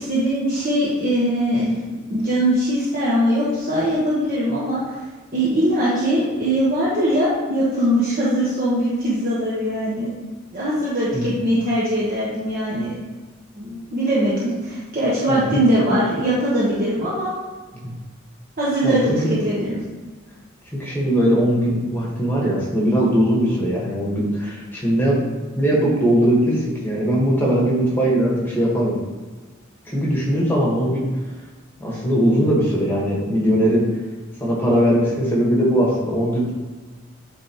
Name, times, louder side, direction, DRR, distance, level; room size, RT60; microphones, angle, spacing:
voice 1, 0.0-1.7 2.1-5.0 5.3-10.1 10.5-13.0 13.6-17.3 18.6-19.8, equal, 45° right, -9 dB, 1.2 m, -21 dB
voice 2, 15.3-15.6 17.8-17.9 18.8-19.3 20.8-25.2 25.6-29.0 29.8-31.1 31.8-33.8 34.4-36.5, equal, 10° left, -5 dB, 1.4 m, -20 dB
8.9 x 3.5 x 3.0 m, 1.3 s
head